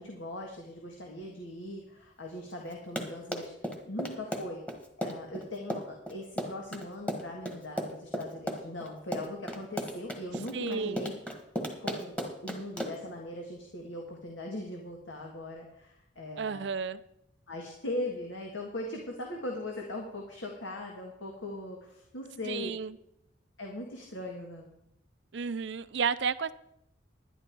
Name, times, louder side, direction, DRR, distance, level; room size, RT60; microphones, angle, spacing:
voice 1, 0.0-4.6 5.0-11.1 11.8-12.2 12.4-16.7 17.5-22.7 23.6-24.7, left 1 dB, 80° left, 1 dB, 1.8 m, -40 dB
Run, 2.7-13.1, equal, 5° left, 1.5 m, -35 dB
voice 2, 10.5-11.0 16.4-17.0 22.5-23.0 25.3-26.5, right 5 dB, 65° right, 15 dB, 0.5 m, -32 dB
11.0 x 11.0 x 4.6 m, 0.79 s
head